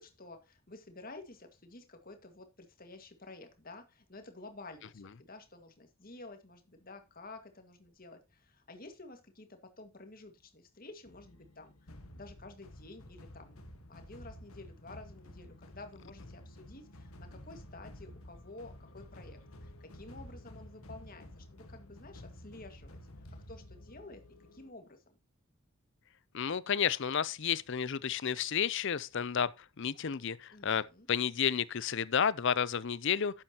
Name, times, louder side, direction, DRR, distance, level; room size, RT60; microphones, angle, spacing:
voice 1, 0.0-13.6 13.9-23.0 23.5-24.2 24.5-25.2 30.5-31.1, left 2 dB, 40° left, 1.9 m, -51 dB
sound 1, 11.0-24.7, left 1 dB, 75° left, 1.6 m, -51 dB
voice 2, 26.3-29.5 29.8-33.4, left 7 dB, 55° left, 0.5 m, -31 dB
12.0 x 8.7 x 2.9 m
head